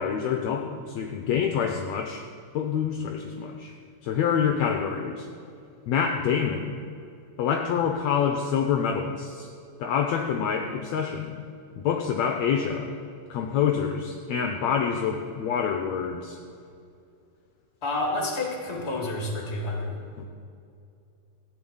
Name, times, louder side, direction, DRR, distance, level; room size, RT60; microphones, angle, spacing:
voice 1, 0.0-2.2 2.5-3.7 4.0-5.3 5.9-6.8 7.4-9.5 9.8-11.4 11.8-12.9 13.3-16.4 20.2-20.3, left 7 dB, 75° left, 3 dB, 1.8 m, -26 dB
voice 2, 17.8-20.0, left 2 dB, 25° left, 0 dB, 2.1 m, -29 dB
14.5 x 6.1 x 8.8 m, 2.5 s
omnidirectional pair, 3.6 m